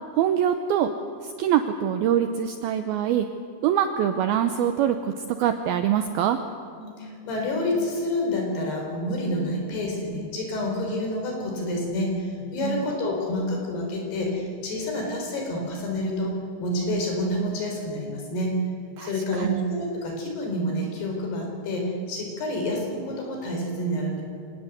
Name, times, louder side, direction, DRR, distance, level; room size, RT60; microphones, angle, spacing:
voice 1, 0.2-0.9 1.2-3.3 3.6-5.1 5.4-6.4 12.6-12.8 19.0-19.6, right 10 dB, 80° right, 8 dB, 2.2 m, -24 dB
voice 2, 6.8-16.3 16.6-18.5 19.0-24.2, left 1 dB, 60° left, 1 dB, 6.0 m, -28 dB
26.0 x 19.0 x 8.1 m, 2.4 s
omnidirectional pair, 5.3 m